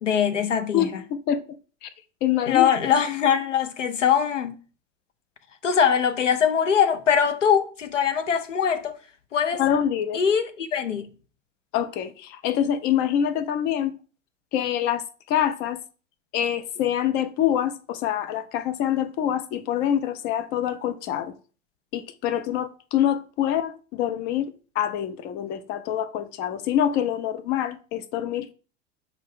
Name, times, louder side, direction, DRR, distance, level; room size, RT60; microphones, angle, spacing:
voice 1, 0.0-1.0 2.5-4.6 5.6-9.0 9.3-9.6 10.1-11.1, left 7 dB, 80° left, 0.6 m, -22 dB
voice 2, 0.7-1.4 1.8-1.9 2.2-2.7 9.6-10.2 11.7-13.9 14.5-15.8 16.3-21.3 21.9-24.5 24.8-28.5, left 10 dB, 30° left, 0.4 m, -25 dB
5.7 x 2.3 x 3.6 m
figure-of-eight pair, 80°, 36 cm